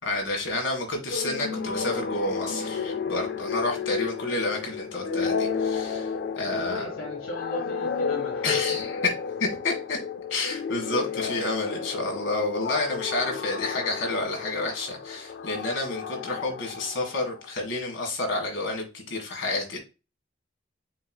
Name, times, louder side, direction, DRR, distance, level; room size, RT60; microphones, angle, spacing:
voice 1, 0.0-6.8 8.4-9.0 9.4-10.0 10.3-19.8, left 2 dB, 70° left, 2 dB, 1.8 m, -30 dB
sound 1, 1.1-17.5, left 6 dB, 55° left, 0.4 m, -32 dB
voice 2, 6.4-8.5, equal, 85° left, -1 dB, 1.5 m, -38 dB
7.2 x 3.1 x 2.3 m, 0.28 s
head